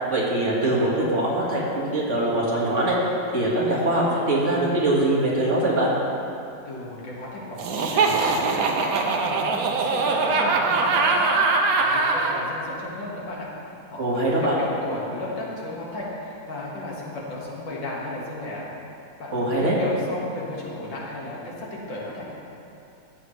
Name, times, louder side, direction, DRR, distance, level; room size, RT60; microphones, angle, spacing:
voice 1, 0.1-3.0 3.3-5.9 14.0-14.6 19.3-19.8, right 1 dB, 40° right, -5 dB, 2.0 m, -22 dB
voice 2, 6.6-11.3 11.8-18.6 19.2-22.3, left 2 dB, 85° left, -4 dB, 2.5 m, -34 dB
Laughter, 7.6-12.4, right 4 dB, 60° right, 1.1 m, -22 dB
13.5 x 8.3 x 3.2 m, 2.7 s
omnidirectional pair, 2.0 m